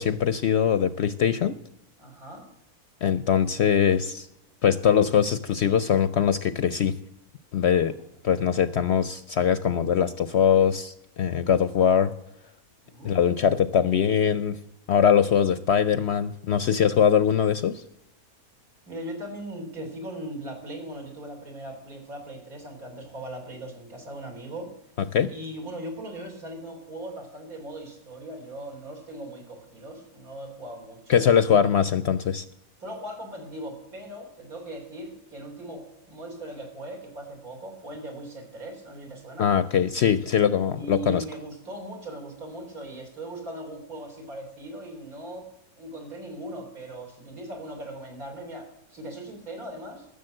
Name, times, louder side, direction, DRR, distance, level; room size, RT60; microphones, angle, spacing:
voice 1, 0.0-1.6 3.0-4.3 4.6-6.9 7.5-7.9 8.2-12.1 13.0-14.6 14.9-17.8 25.1-25.3 31.1-32.4 39.4-41.2, left 8 dB, 60° left, 14 dB, 0.7 m, -22 dB
voice 2, 2.0-2.5 7.8-7.9 12.8-13.1 18.9-24.7 25.3-31.3 32.8-39.5 40.7-45.5 45.8-50.1, right 1 dB, 75° right, 0 dB, 4.1 m, -39 dB
14.5 x 7.0 x 7.7 m, 0.83 s
omnidirectional pair, 1.5 m